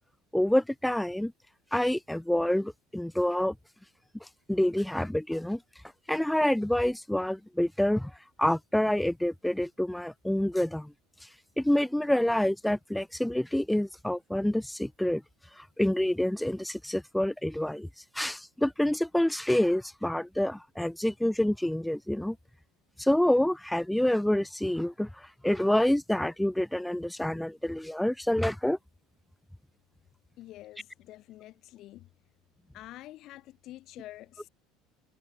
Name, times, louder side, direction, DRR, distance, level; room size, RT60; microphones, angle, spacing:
voice 1, 0.3-1.3 1.7-3.5 4.5-5.6 6.1-8.1 8.4-10.9 11.6-15.2 15.6-17.9 18.1-22.4 23.0-28.8, left 1 dB, 5° left, 0.9 m, -27 dB
voice 2, 30.4-32.1 32.7-34.5, left 15 dB, 50° left, 4.1 m, -47 dB
cardioid pair, 145°, 0 cm